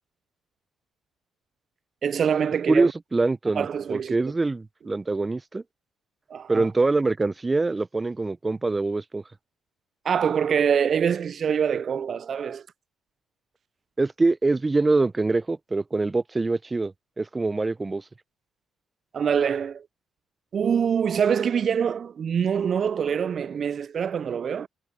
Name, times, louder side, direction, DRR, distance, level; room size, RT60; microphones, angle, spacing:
voice 1, 2.0-2.9 3.5-4.3 6.3-6.7 10.0-12.7 19.1-19.9 20.5-24.7, right 7 dB, 55° right, 0.4 m, -25 dB
voice 2, 2.7-5.6 6.5-9.2 14.0-18.0, right 3 dB, 25° right, 0.7 m, -24 dB
hypercardioid pair, 50°, 0 cm